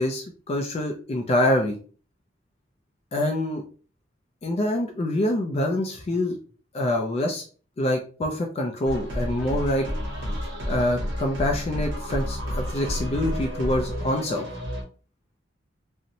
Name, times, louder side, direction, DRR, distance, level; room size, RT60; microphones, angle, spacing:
voice 1, 0.0-1.8 3.1-3.6 4.4-6.4 6.7-7.4 7.8-9.9 10.7-14.4, left 1 dB, 30° left, 2 dB, 0.3 m, -25 dB
sound 1, 8.8-14.8, equal, 80° right, 1.0 m, -30 dB
2.6 x 2.0 x 2.8 m, 0.39 s
head